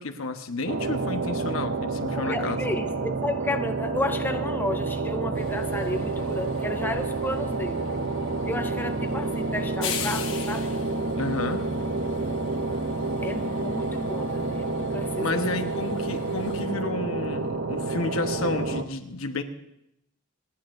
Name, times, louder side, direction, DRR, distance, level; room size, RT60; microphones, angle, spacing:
voice 1, 0.0-2.6 11.2-11.7 15.2-19.4, left 2 dB, 85° left, 6 dB, 1.1 m, -31 dB
sound 1, 0.7-18.8, right 3 dB, 55° right, 0.7 m, -29 dB
voice 2, 2.2-7.9 8.5-10.8 13.2-15.7, left 2 dB, 10° left, 7 dB, 0.5 m, -32 dB
Train, 5.3-16.7, left 6 dB, 65° left, 1.4 m, -41 dB
28.0 x 10.0 x 2.6 m, 0.81 s
head